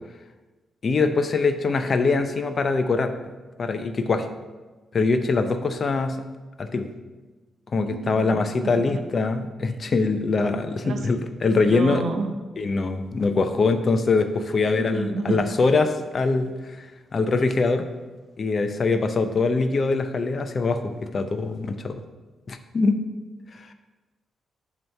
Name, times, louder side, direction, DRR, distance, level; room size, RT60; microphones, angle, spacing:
voice 1, 0.8-3.1 3.6-4.3 4.9-6.2 6.6-6.9 7.7-12.0 12.6-16.9 17.1-17.8 18.4-22.0 22.5-23.0 23.5-23.7, left 3 dB, 50° left, 8 dB, 0.6 m, -23 dB
voice 2, 7.9-8.3 8.6-9.0 10.8-11.1 11.6-12.3 14.7-15.4, right 4 dB, 65° right, 6 dB, 0.6 m, -30 dB
7.5 x 3.0 x 5.5 m, 1.2 s
supercardioid pair, 50°, 0 cm